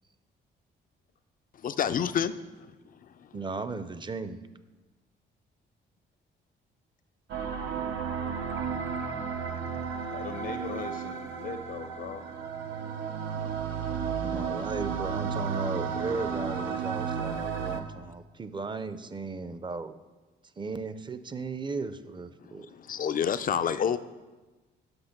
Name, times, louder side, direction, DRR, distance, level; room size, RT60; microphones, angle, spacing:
voice 1, 1.6-2.3 22.5-24.0, left 8 dB, 45° left, 12 dB, 0.5 m, -28 dB
voice 2, 3.3-4.4 14.3-19.9 20.6-22.7, right 4 dB, 25° right, 12 dB, 0.6 m, -36 dB
sound 1, 7.3-17.8, right 6 dB, 80° right, 0.8 m, -33 dB
voice 3, 10.1-12.2 22.5-22.7 23.2-23.7, left 6 dB, 65° left, 6 dB, 0.8 m, -40 dB
7.9 x 6.0 x 5.9 m, 1.2 s
cardioid pair, 90°, 20 cm